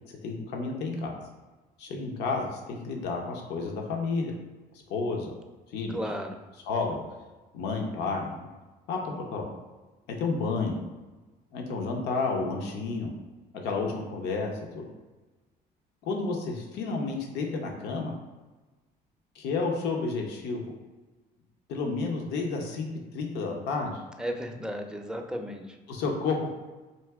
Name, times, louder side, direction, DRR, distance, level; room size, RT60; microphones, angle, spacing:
voice 1, 0.1-1.2 1.8-4.3 4.9-5.3 5.7-6.0 6.7-7.0 7.5-8.3 8.9-9.5 10.2-10.8 11.5-13.1 13.6-14.9 16.0-18.2 19.4-20.7 21.7-22.9 23.1-23.9 25.9-26.5, left 4 dB, 80° left, 1 dB, 0.7 m, -31 dB
voice 2, 5.9-6.4 24.2-25.8, equal, 5° right, 3 dB, 0.5 m, -34 dB
4.4 x 2.8 x 3.5 m, 1.2 s
cardioid pair, 110°, 17 cm